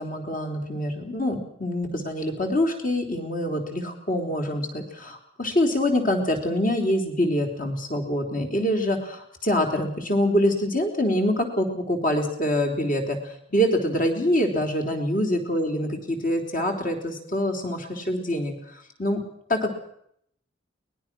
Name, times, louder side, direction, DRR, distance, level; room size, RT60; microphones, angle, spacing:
voice 1, 0.0-18.5 19.0-19.2 19.5-19.7, left 1 dB, 40° left, 3 dB, 3.8 m, -25 dB
23.5 x 19.5 x 6.2 m, 0.70 s
head